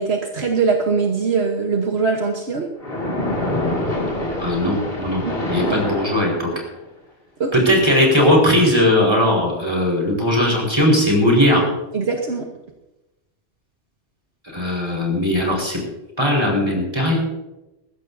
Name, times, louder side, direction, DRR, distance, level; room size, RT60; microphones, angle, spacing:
voice 1, 0.0-2.7 5.2-5.3 5.7-5.8 7.4-7.5 11.9-12.5, right 4 dB, 70° right, 2 dB, 1.5 m, -21 dB
Splash splatter, 2.8-6.8, left 1 dB, 55° left, 2.7 m, -26 dB
voice 2, 4.4-5.2 5.5-6.5 7.5-11.6 14.5-15.8 16.2-17.2, left 1 dB, 25° right, -2 dB, 4.9 m, -18 dB
20.5 x 15.5 x 2.7 m, 0.98 s
omnidirectional pair, 1.1 m